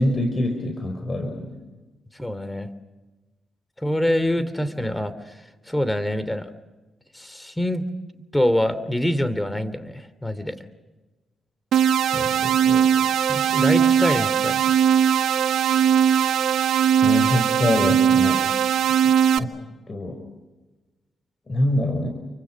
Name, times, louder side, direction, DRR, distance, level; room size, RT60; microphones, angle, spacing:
voice 1, 0.0-1.6 12.1-13.0 17.0-18.5 19.0-19.6 19.9-20.2 21.5-22.1, left 1 dB, 40° left, 5 dB, 5.0 m, -25 dB
voice 2, 2.1-2.7 3.8-5.4 5.7-6.5 7.1-7.8 8.3-10.6 13.3-14.7, left 1 dB, 10° left, 13 dB, 2.9 m, -25 dB
sound 1, 11.7-19.4, right 9 dB, 75° right, 1.0 m, -19 dB
29.5 x 24.5 x 6.1 m, 1.2 s
supercardioid pair, 45°, 0 cm